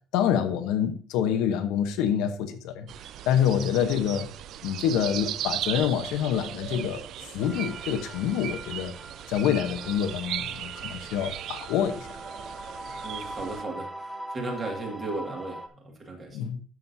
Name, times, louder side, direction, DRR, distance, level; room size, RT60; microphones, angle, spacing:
voice 1, 0.1-2.9 3.2-4.3 4.6-7.0 7.3-8.9 9.3-12.1 16.3-16.6, left 9 dB, 70° left, 0.9 m, -26 dB
sound 1, 2.9-13.6, right 11 dB, 45° right, 0.3 m, -37 dB
sound 2, 7.4-15.7, right 1 dB, 5° right, 0.6 m, -42 dB
voice 2, 12.9-13.9 14.3-16.4, right 2 dB, 25° right, 2.0 m, -35 dB
13.0 x 6.2 x 2.7 m
cardioid pair, 175°, 0 cm